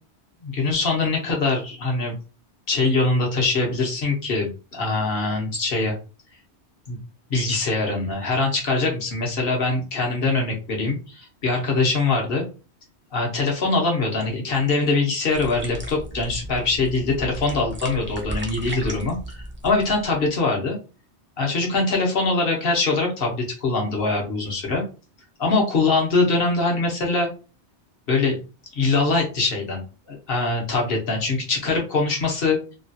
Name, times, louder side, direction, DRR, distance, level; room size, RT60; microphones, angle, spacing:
voice 1, 0.4-2.1 2.7-5.9 6.9-7.0 7.3-12.4 13.1-20.8 21.4-24.8 25.4-27.3 28.1-28.4 28.7-29.8 30.1-32.6, left 3 dB, 60° left, 0 dB, 1.1 m, -23 dB
sound 1, 15.3-20.3, right 1 dB, 15° right, 0.5 m, -35 dB
3.0 x 2.3 x 2.7 m, 0.33 s
omnidirectional pair, 1.1 m